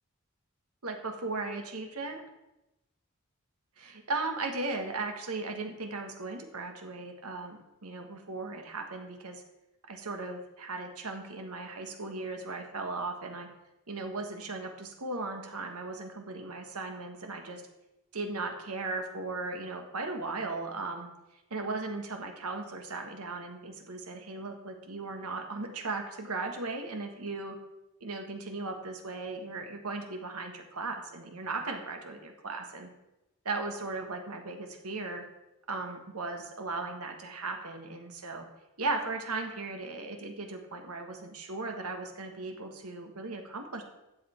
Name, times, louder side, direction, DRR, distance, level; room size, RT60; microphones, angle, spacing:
voice 1, 0.8-2.2 3.8-9.4 9.9-13.5 13.9-17.6 18.1-21.1 21.5-27.6 28.0-32.9 33.4-35.2 35.7-38.4 38.8-43.8, right 3 dB, 90° right, 4 dB, 1.6 m, -37 dB
12.5 x 7.8 x 4.5 m, 0.95 s
head